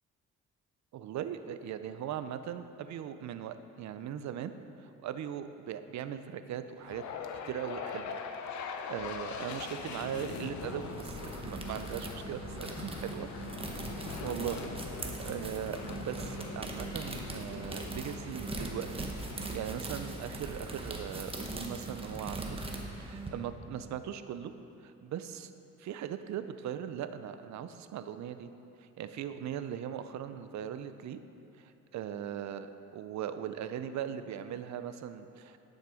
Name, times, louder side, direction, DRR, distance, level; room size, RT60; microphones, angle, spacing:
voice 1, 0.9-4.5 4.8-7.0 7.4-8.2 8.9-13.3 14.0-19.1 19.3-22.6 23.0-24.5 24.8-25.5 25.8-28.5 29.0-31.2 31.6-35.6, right 9 dB, 65° right, 10 dB, 0.6 m, -39 dB
sound 1, 6.8-21.0, left 6 dB, 70° left, 0.7 m, -43 dB
sound 2, 10.7-23.3, right 2 dB, 20° right, 1.1 m, -40 dB
10.5 x 6.6 x 4.9 m, 2.7 s
cardioid pair, 90°, 30 cm